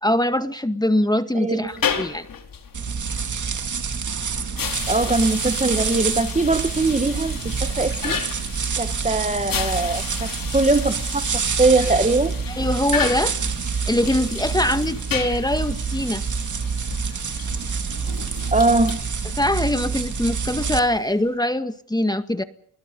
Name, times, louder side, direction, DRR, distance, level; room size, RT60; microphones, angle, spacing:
voice 1, 0.0-2.3 12.5-13.3 13.9-16.2 19.4-22.4, left 1 dB, 10° left, 9 dB, 1.9 m, -22 dB
voice 2, 1.3-1.7 4.9-8.2 8.8-12.3 18.5-19.0, right 2 dB, 20° right, 10 dB, 1.7 m, -21 dB
sound 1, 1.6-21.3, left 6 dB, 60° left, 4.5 m, -33 dB
sound 2, 2.7-20.8, right 5 dB, 50° right, 2.5 m, -27 dB
28.0 x 22.0 x 5.5 m, 0.62 s
cardioid pair, 65°, 39 cm